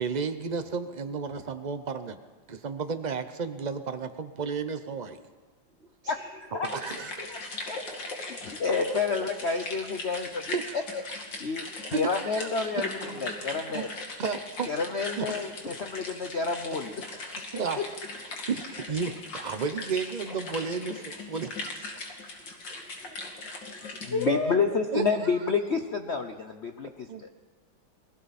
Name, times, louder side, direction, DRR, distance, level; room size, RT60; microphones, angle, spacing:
voice 1, 0.0-2.2 2.5-5.2 6.6-7.8 8.0-8.5 10.5-10.8 11.9-12.7 13.7-13.8 14.2-14.7 15.2-15.4 17.5-17.8 18.5-22.0 24.9-25.3 27.1-27.4, right 5 dB, 65° right, 9 dB, 0.4 m, -33 dB
voice 2, 6.1-6.7 7.3-7.4 7.7-7.8 8.3-10.4 10.7-10.8 11.4-11.7 11.9-13.9 14.7-17.6 24.0-27.3, left 5 dB, 50° left, 6 dB, 0.9 m, -30 dB
sound 1, 6.6-24.3, left 2 dB, 70° left, 3.0 m, -39 dB
voice 3, 8.2-8.9 12.7-13.3 22.4-24.5, equal, 35° right, -2 dB, 3.7 m, -36 dB
29.0 x 21.0 x 4.2 m, 1.4 s
omnidirectional pair, 2.0 m